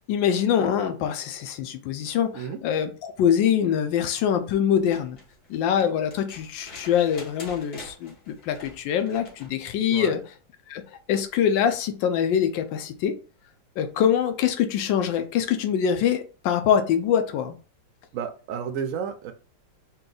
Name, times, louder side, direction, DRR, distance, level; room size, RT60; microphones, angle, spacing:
voice 1, 0.1-5.2 5.5-10.2 10.7-10.8 11.1-13.2 13.8-17.5, left 8 dB, 85° left, 1.3 m, -24 dB
sound 1, 4.7-9.6 11.2-11.3, left 2 dB, 65° left, 2.1 m, -46 dB
voice 2, 18.1-19.3, right 7 dB, 80° right, 0.7 m, -31 dB
4.3 x 2.3 x 3.8 m
omnidirectional pair, 2.0 m